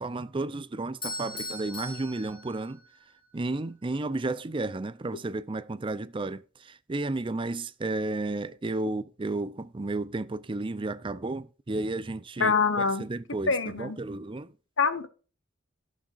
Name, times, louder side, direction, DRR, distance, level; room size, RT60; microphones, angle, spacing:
voice 1, 0.0-2.8 3.3-6.4 6.9-12.5 13.0-13.5 13.8-14.5, right 2 dB, 25° right, 0.5 m, -32 dB
Bell / Doorbell, 1.0-3.1, left 2 dB, 25° left, 4.3 m, -39 dB
voice 2, 12.4-13.0 13.5-14.0 14.8-15.1, left 5 dB, 75° left, 1.2 m, -25 dB
18.0 x 6.4 x 2.5 m
head